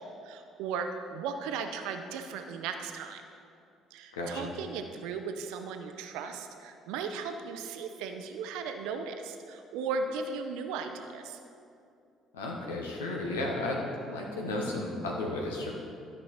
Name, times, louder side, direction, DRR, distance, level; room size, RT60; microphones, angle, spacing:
voice 1, 0.0-3.2 3.9-11.4, right 5 dB, 65° right, 6 dB, 0.5 m, -36 dB
voice 2, 4.1-4.5 12.3-13.8 14.1-15.7, left 2 dB, 80° left, 0 dB, 1.1 m, -33 dB
12.5 x 5.4 x 4.2 m, 2.5 s
figure-of-eight pair, 50°, 0 cm